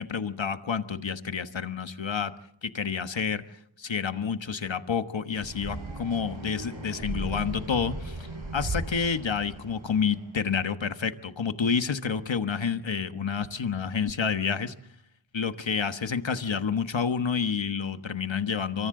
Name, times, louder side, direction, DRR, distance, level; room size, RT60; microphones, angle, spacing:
voice 1, 0.0-2.3 2.6-3.4 3.8-14.7 15.3-18.9, left 6 dB, 70° left, 9 dB, 1.4 m, -29 dB
sound 1, 5.4-10.2, right 2 dB, 75° right, 7.9 m, -37 dB
27.0 x 25.0 x 3.8 m, 0.71 s
wide cardioid pair, 45°, 47 cm